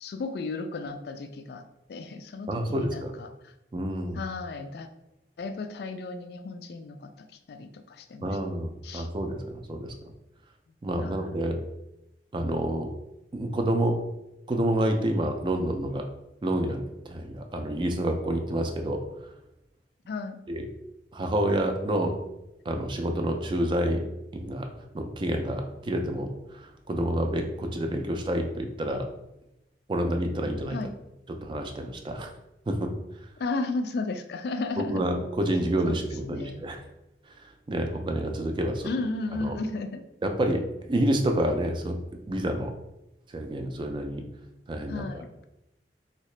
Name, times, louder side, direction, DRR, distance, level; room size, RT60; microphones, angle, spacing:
voice 1, 0.0-1.6 1.9-3.5 4.1-4.9 5.4-8.4 8.8-9.1 11.0-11.4 20.1-20.4 30.7-30.9 33.4-35.0 35.9-36.0 36.3-36.6 38.8-40.0 44.9-45.3, left 3 dB, 60° left, 8 dB, 0.3 m, -34 dB
voice 2, 2.5-3.1 3.7-4.2 8.2-9.9 10.8-11.6 12.3-12.9 13.3-14.0 14.5-16.0 16.4-19.0 20.5-20.7 21.1-22.2 22.7-24.1 24.3-24.7 24.9-29.1 29.9-30.8 31.3-32.3 32.7-32.9 34.8-36.8 37.7-38.9 39.4-39.5 40.2-42.7 43.3-44.2 44.7-45.0, right 1 dB, 25° right, 4 dB, 0.3 m, -28 dB
3.2 x 2.8 x 3.2 m, 0.91 s
head